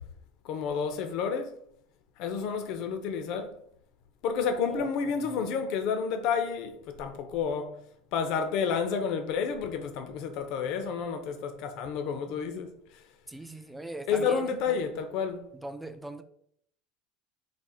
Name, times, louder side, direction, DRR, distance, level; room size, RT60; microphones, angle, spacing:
voice 1, 0.4-1.5 2.2-3.5 4.2-7.8 8.1-12.7 14.1-15.4, left 6 dB, 55° left, 0.6 m, -30 dB
voice 2, 4.7-5.4 13.3-14.8 15.6-16.2, right 1 dB, 5° right, 0.3 m, -41 dB
4.1 x 2.4 x 4.7 m
cardioid pair, 155°, 0 cm